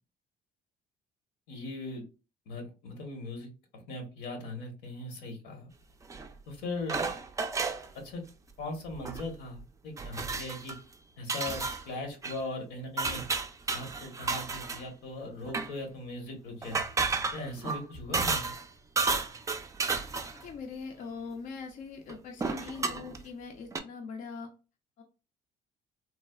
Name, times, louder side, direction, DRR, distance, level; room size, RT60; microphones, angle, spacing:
voice 1, 1.5-2.0 2.5-5.7 6.5-7.1 7.9-8.2 8.6-10.7 11.2-13.2 13.7-16.8 17.3-18.5, left 2 dB, 85° left, 3 dB, 1.0 m, -39 dB
sound 1, 6.1-6.3 6.9-7.9 8.9-9.3 9.6-9.7 10.0-10.8 11.3-11.8 12.2-12.4 13.0-14.8 15.4-15.7 16.6-18.7 19.0-20.4 22.1-22.2 22.4-23.2 23.7-23.8, right 4 dB, 20° right, 0.3 m, -32 dB
voice 2, 20.3-24.5 25.0-25.1, left 5 dB, 55° left, 3 dB, 0.5 m, -42 dB
3.2 x 2.0 x 2.2 m, 0.32 s
cardioid pair, 110°, 17 cm